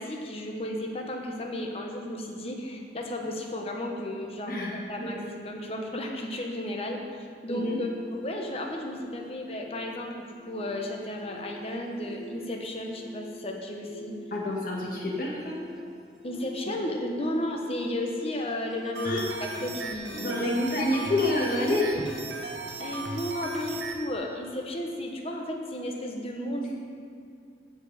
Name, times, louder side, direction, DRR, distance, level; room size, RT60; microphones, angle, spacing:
voice 1, 0.0-7.0 7.4-14.1 16.2-20.4 22.8-26.7, left 1 dB, 35° left, 1 dB, 1.1 m, -34 dB
voice 2, 4.5-5.1 7.5-7.8 14.3-15.6 19.0-19.3 20.2-21.9, left 1 dB, 50° left, -3 dB, 1.9 m, -28 dB
sound 1, 7.5-24.1, left 2 dB, 5° right, 0.6 m, -45 dB
sound 2, 18.9-24.0, right 3 dB, 90° right, 1.0 m, -37 dB
14.5 x 5.0 x 5.0 m, 2.4 s
head